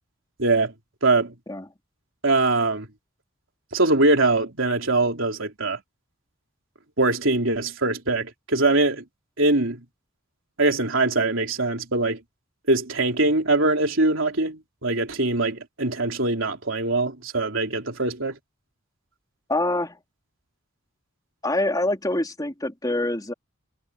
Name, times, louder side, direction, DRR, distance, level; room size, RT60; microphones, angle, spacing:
voice 1, 0.4-0.7 1.0-1.4 2.2-2.9 3.7-5.8 7.0-9.0 9.4-9.8 10.6-12.2 12.7-18.4, right 2 dB, 65° right, 4.1 m, -22 dB
voice 2, 19.5-20.0 21.4-23.3, left 1 dB, 20° left, 3.5 m, -25 dB
head